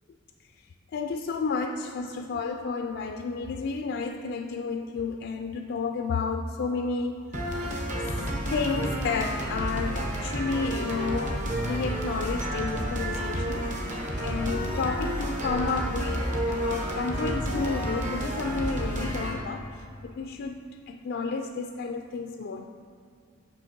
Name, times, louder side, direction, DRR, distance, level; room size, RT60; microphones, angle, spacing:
voice 1, 0.9-7.9 8.5-13.7 14.2-22.7, left 4 dB, 60° left, 4 dB, 0.3 m, -31 dB
sound 1, 7.3-19.3, equal, 40° right, 1.0 m, -30 dB
6.4 x 5.9 x 5.3 m, 2.4 s
head